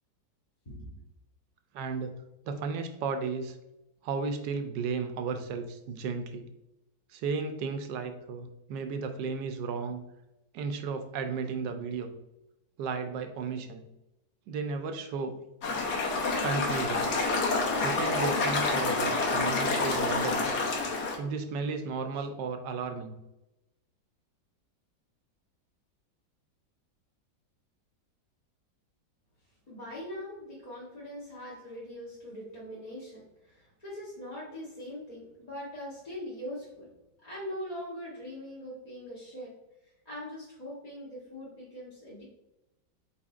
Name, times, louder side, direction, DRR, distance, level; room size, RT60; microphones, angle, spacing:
voice 1, 1.7-2.1 2.5-3.6 4.0-6.5 7.1-10.0 10.5-12.1 12.8-13.8 14.5-15.3 16.4-17.1 17.7-20.5 21.2-23.2, right 5 dB, 75° right, 7 dB, 1.1 m, -34 dB
sound 1, 15.6-21.2, left 3 dB, 65° left, 1.3 m, -28 dB
voice 2, 29.7-36.9 37.2-39.5 40.0-42.2, equal, 30° left, -8 dB, 0.9 m, -41 dB
4.4 x 4.2 x 2.4 m, 0.92 s
omnidirectional pair, 2.0 m